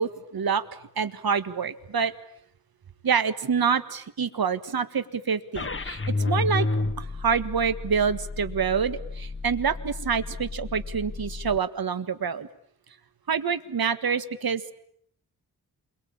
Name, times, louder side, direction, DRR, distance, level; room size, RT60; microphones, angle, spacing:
voice 1, 0.0-2.1 3.0-6.7 7.0-12.5 13.3-14.7, right 6 dB, 60° right, 12 dB, 1.7 m, -27 dB
sound 1, 5.6-11.6, left 3 dB, 30° left, 1.4 m, -31 dB
28.0 x 23.0 x 8.8 m, 0.69 s
cardioid pair, 65°, 41 cm